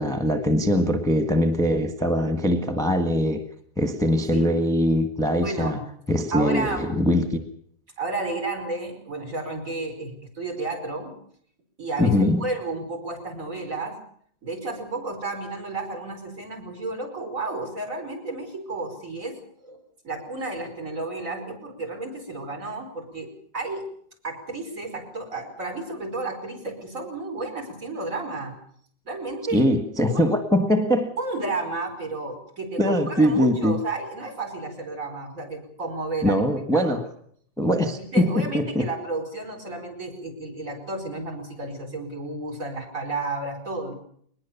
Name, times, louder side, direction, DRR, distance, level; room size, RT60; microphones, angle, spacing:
voice 1, 0.0-3.4 3.8-5.8 6.1-7.4 12.0-12.5 29.5-31.1 32.8-33.8 36.2-37.0 37.6-38.9, equal, ahead, 6 dB, 1.4 m, -22 dB
voice 2, 5.4-5.8 6.3-7.0 8.0-11.1 11.8-14.0 14.4-19.8 20.0-23.3 23.5-23.9 24.2-28.5 29.1-29.7 30.1-30.2 31.2-36.4 36.7-37.0 38.0-43.9, right 2 dB, 50° right, 3 dB, 5.6 m, -32 dB
22.0 x 20.5 x 7.1 m, 0.64 s
omnidirectional pair, 1.9 m